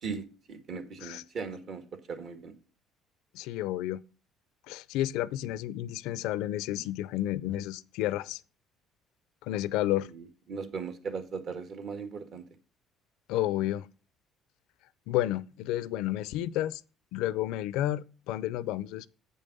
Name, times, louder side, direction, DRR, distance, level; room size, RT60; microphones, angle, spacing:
voice 1, 0.0-1.8 2.1-2.5 10.1-12.4 15.9-16.1, right 5 dB, 50° right, 1.7 m, -38 dB
voice 2, 3.3-4.0 4.7-8.4 9.5-10.1 13.3-13.9 15.1-16.8 17.1-19.1, left 14 dB, 90° left, 0.4 m, -31 dB
8.4 x 5.5 x 5.3 m
cardioid pair, 130°, 0 cm